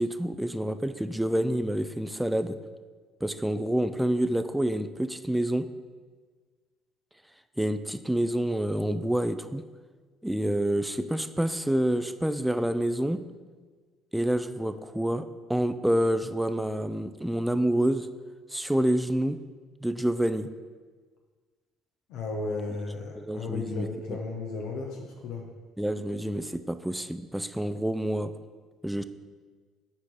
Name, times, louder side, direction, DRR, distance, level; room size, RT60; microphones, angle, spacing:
voice 1, 0.0-2.6 3.2-5.7 7.6-9.6 10.2-13.2 14.1-18.1 18.5-19.4 19.8-20.5 23.2-24.2 25.8-28.3 28.8-29.0, right 1 dB, 5° right, 11 dB, 0.4 m, -28 dB
voice 2, 22.1-25.5, left 3 dB, 75° left, 1 dB, 0.9 m, -34 dB
7.2 x 4.7 x 4.3 m, 1.5 s
supercardioid pair, 80°, 0 cm